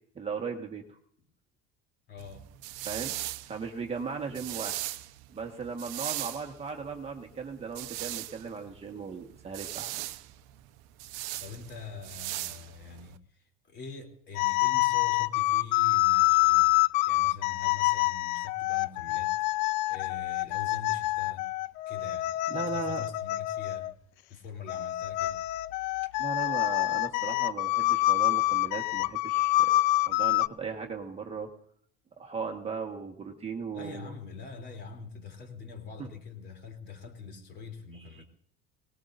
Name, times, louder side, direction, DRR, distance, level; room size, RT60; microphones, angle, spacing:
voice 1, 0.1-1.0 2.8-3.1 3.5-4.8 5.3-9.9 22.5-23.0 26.2-29.7 30.1-31.5 32.2-34.1 36.0-36.1 37.9-38.2, right 5 dB, 20° right, 1.5 m, -37 dB
voice 2, 2.1-2.5 4.2-4.5 11.4-16.7 17.1-21.5 21.9-23.9 24.3-25.4 33.7-38.2, left 5 dB, 35° left, 3.3 m, -44 dB
sound 1, 2.2-13.2, right 17 dB, 85° right, 1.0 m, -39 dB
sound 2, 14.4-23.9 24.7-30.5, left 19 dB, 80° left, 0.5 m, -26 dB
23.0 x 19.5 x 2.7 m
cardioid pair, 155°, 30 cm